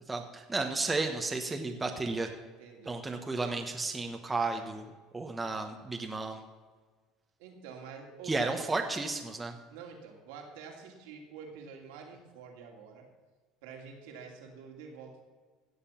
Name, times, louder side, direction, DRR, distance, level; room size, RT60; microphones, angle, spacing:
voice 1, 0.1-2.3 2.9-4.8 5.1-6.4 8.3-9.5, right 3 dB, 15° right, 3 dB, 1.1 m, -33 dB
voice 2, 2.6-3.0 4.4-4.7 7.4-8.6 9.7-13.1 13.6-15.2, right 6 dB, 85° right, 2 dB, 2.7 m, -47 dB
16.5 x 6.9 x 5.7 m, 1.4 s
supercardioid pair, 115°, 0 cm